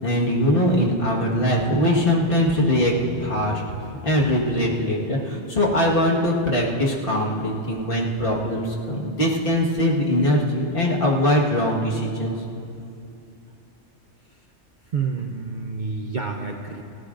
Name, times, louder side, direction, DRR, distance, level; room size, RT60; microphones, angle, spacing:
voice 1, 0.0-2.9 3.2-3.6 3.9-12.4, left 1 dB, 45° left, -3 dB, 1.8 m, -21 dB
voice 2, 14.9-16.8, right 5 dB, 45° right, 2 dB, 0.7 m, -28 dB
29.0 x 13.0 x 2.5 m, 2.6 s
omnidirectional pair, 1.3 m